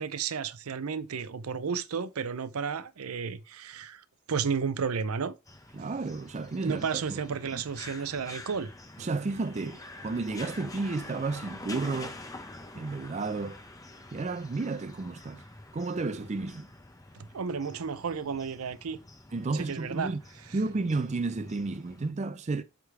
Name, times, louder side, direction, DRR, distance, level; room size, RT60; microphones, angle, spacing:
voice 1, 0.0-5.3 6.6-8.7 17.1-19.0 19.5-20.1, right 6 dB, 85° right, 0.6 m, -32 dB
sound 1, 5.5-22.1, left 2 dB, 15° left, 0.9 m, -47 dB
voice 2, 5.7-7.6 9.0-12.2 12.7-13.6 14.1-15.4 15.7-16.7 19.3-20.2 20.5-22.6, right 3 dB, 30° right, 0.4 m, -32 dB
8.1 x 3.6 x 4.6 m
head